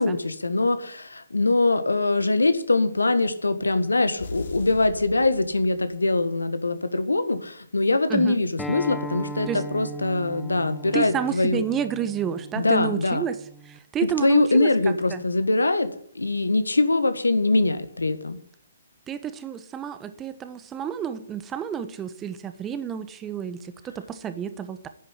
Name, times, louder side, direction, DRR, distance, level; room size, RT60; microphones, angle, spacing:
voice 1, 0.0-11.6 12.5-13.2 14.2-15.9 16.1-18.4, left 2 dB, 85° left, 11 dB, 1.7 m, -23 dB
sound 1, 4.2-6.1, left 3 dB, 65° left, 3.1 m, -39 dB
Acoustic guitar, 8.6-13.8, right 2 dB, 5° left, 1.1 m, -38 dB
voice 2, 10.9-13.4 13.6-14.7 15.1-15.2 19.1-24.9, right 8 dB, 15° right, 11 dB, 1.2 m, -30 dB
10.5 x 9.0 x 10.0 m, 0.63 s
figure-of-eight pair, 130°, 0 cm